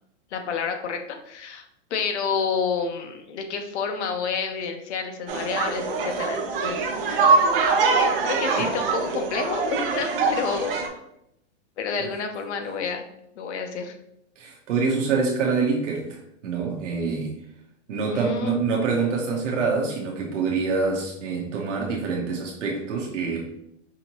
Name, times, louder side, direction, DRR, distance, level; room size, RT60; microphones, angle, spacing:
voice 1, 0.3-1.6 1.9-7.3 7.9-10.8 11.8-13.1 13.4-13.9 18.1-18.6, left 6 dB, 75° left, 0.8 m, -29 dB
sound 1, 5.3-10.9, right 4 dB, 50° right, 0.7 m, -23 dB
voice 2, 14.4-17.4 17.9-23.6, right 4 dB, 90° right, 0.9 m, -26 dB
5.0 x 2.8 x 2.9 m
supercardioid pair, 180°, 35 cm